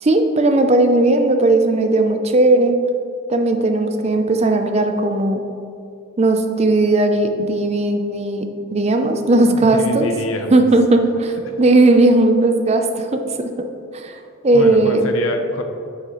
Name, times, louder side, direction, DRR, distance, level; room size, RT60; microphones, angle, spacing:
voice 1, 0.0-2.8 3.3-5.4 6.2-10.1 10.5-13.5 13.9-14.2 14.4-15.0, right 2 dB, 30° right, 6 dB, 0.5 m, -16 dB
voice 2, 9.5-10.7 11.5-11.6 14.5-15.6, left 2 dB, 85° left, 5 dB, 0.7 m, -27 dB
9.6 x 6.3 x 3.1 m, 2.5 s
head